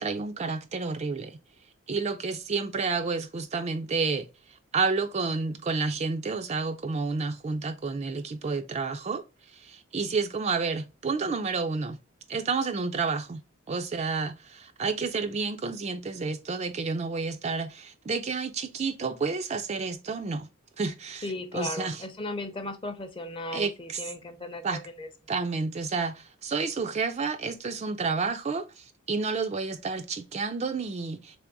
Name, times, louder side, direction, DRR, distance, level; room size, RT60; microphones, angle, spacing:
voice 1, 0.0-1.4 1.9-12.0 12.3-20.5 20.8-22.0 23.5-24.0 24.6-24.8 25.3-31.5, right 4 dB, 30° right, 0.3 m, -30 dB
voice 2, 21.2-25.1, left 2 dB, 25° left, 0.6 m, -36 dB
3.4 x 3.4 x 3.8 m
head